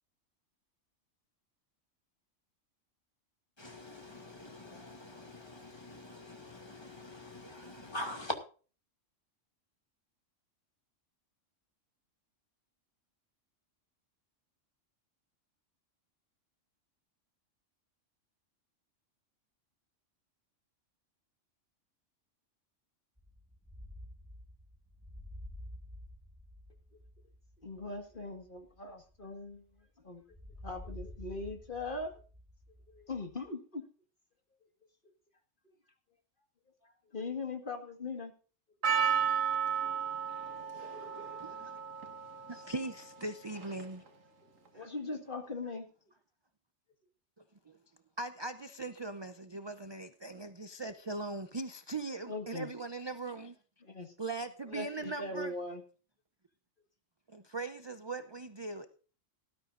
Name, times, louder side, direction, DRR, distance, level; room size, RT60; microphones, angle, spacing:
voice 1, 3.6-8.4, left 1 dB, 20° left, 2.4 m, -43 dB
sound 1, 23.2-29.8 30.3-33.5, left 1 dB, 5° right, 1.7 m, -50 dB
voice 2, 27.6-29.7 30.0-30.2 30.6-32.2 32.9-33.8 35.7-35.8 36.8-38.3 40.5-40.6 40.9-41.0 44.7-45.9 52.3-52.7 53.8-54.1 54.7-55.8, left 3 dB, 40° left, 2.0 m, -40 dB
Percussion, 38.8-44.1, right 7 dB, 90° right, 1.9 m, -34 dB
voice 3, 41.4-41.8 42.5-44.0 44.7-44.9 47.7-47.8 48.2-53.6 54.2-55.5 57.3-59.0, right 3 dB, 25° right, 0.6 m, -40 dB
18.5 x 12.5 x 2.6 m
omnidirectional pair, 1.3 m